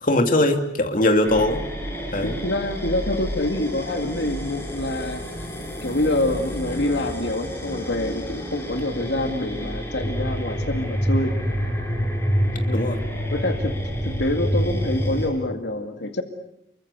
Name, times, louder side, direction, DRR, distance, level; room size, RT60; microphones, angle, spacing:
voice 1, 0.0-1.6 2.1-2.4 12.7-13.0, left 1 dB, 50° left, 5 dB, 2.8 m, -20 dB
sound 1, 1.2-15.3, equal, 15° left, 6.0 m, -28 dB
voice 2, 2.2-5.2 5.8-11.3 12.4-12.8 13.3-13.7 14.0-16.2, left 1 dB, 80° left, 6 dB, 2.1 m, -26 dB
30.0 x 23.5 x 6.8 m, 0.78 s
head